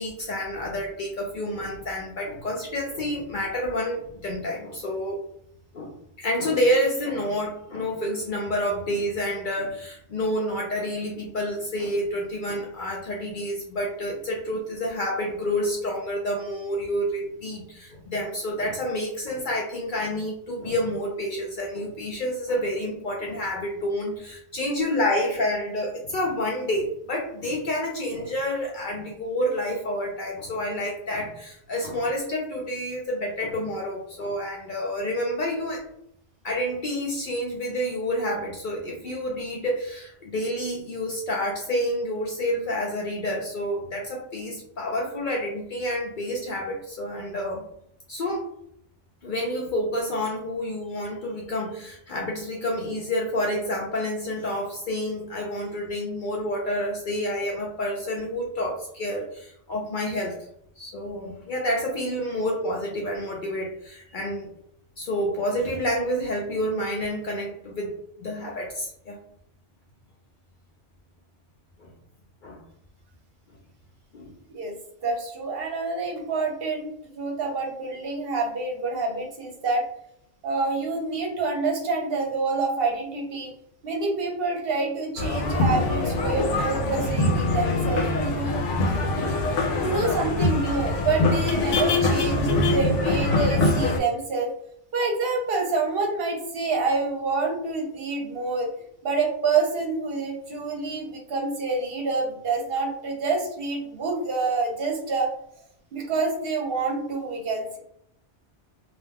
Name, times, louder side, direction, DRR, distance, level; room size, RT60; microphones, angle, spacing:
voice 1, 0.0-5.2 5.7-5.9 6.2-35.8 36.4-47.6 48.1-48.5 49.2-60.4 60.8-64.5 65.0-67.9 68.2-69.2 71.8-71.9 72.4-72.6 74.1-74.3, equal, 55° left, -1 dB, 0.6 m, -29 dB
voice 2, 75.0-79.9 80.4-83.5 83.8-88.6 89.7-94.5 94.9-98.7 99.0-105.3 105.9-107.8, right 3 dB, 60° right, 0 dB, 0.9 m, -27 dB
sound 1, 85.2-94.0, left 2 dB, 85° left, 0.9 m, -23 dB
2.3 x 2.2 x 3.2 m, 0.72 s
omnidirectional pair, 1.2 m